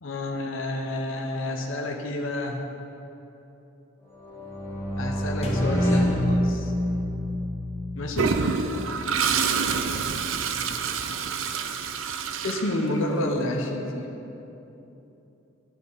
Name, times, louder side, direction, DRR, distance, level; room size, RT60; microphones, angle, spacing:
voice 1, 0.0-2.6 5.0-6.7 8.0-8.4 12.4-14.1, left 1 dB, 75° left, 1 dB, 0.8 m, -29 dB
sound 1, 4.1-7.1, equal, 15° left, 1.6 m, -32 dB
sound 2, 5.4-9.6, left 1 dB, 30° left, 1.0 m, -27 dB
Toilet flush, 8.2-13.2, right 5 dB, 75° right, 0.5 m, -27 dB
12.0 x 5.6 x 4.7 m, 3.0 s
head